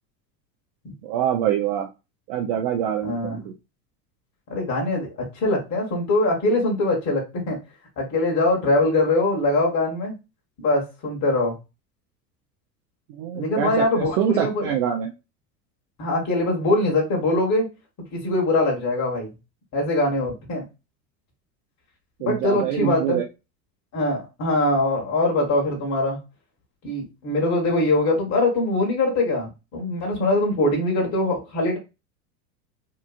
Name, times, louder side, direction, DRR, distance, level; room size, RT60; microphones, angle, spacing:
voice 1, 1.0-1.9 2.3-3.5 13.2-15.1 22.2-23.2, right 10 dB, 45° right, 2 dB, 0.6 m, -25 dB
voice 2, 3.0-3.4 4.5-7.6 8.0-10.1 10.6-11.6 13.3-14.7 16.0-17.7 18.1-19.3 19.7-20.6 22.2-23.2 23.9-26.2 26.8-31.8, left 2 dB, 35° left, -2 dB, 1.2 m, -22 dB
2.8 x 2.4 x 2.3 m, 0.26 s
hypercardioid pair, 85°, 49 cm